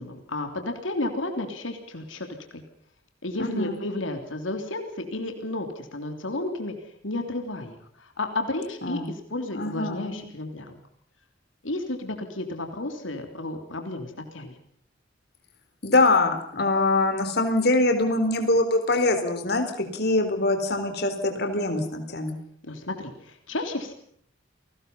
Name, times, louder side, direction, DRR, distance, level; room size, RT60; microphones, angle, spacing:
voice 1, 0.0-2.6 3.2-6.7 7.0-10.8 11.6-14.5 22.6-23.9, left 2 dB, 85° left, 5 dB, 3.4 m, -32 dB
voice 2, 3.4-3.8 8.8-9.1 9.5-10.2 15.8-22.3, left 2 dB, 55° left, 6 dB, 4.3 m, -23 dB
30.0 x 19.5 x 5.6 m, 0.64 s
head